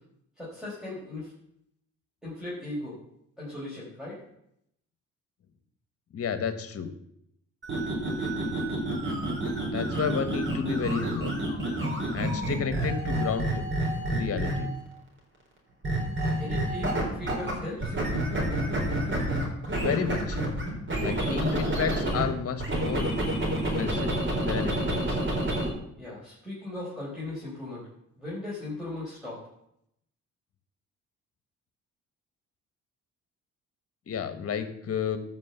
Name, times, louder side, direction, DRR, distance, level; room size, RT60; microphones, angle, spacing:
voice 1, 0.4-1.3 2.2-3.0 3.4-4.2 16.4-18.0 26.0-27.8 28.2-29.4, left 2 dB, ahead, -8 dB, 4.5 m, -37 dB
voice 2, 6.1-6.9 9.7-11.3 12.1-13.6 14.1-14.7 19.7-20.4 20.9-23.1 23.7-25.2 34.1-35.2, left 6 dB, 50° left, 10 dB, 1.5 m, -31 dB
sound 1, 7.6-14.8 15.8-17.5 17.8-22.2 22.6-25.7, right 1 dB, 40° right, 4.0 m, -29 dB
13.5 x 6.0 x 6.9 m, 0.77 s
cardioid pair, 90°, 30 cm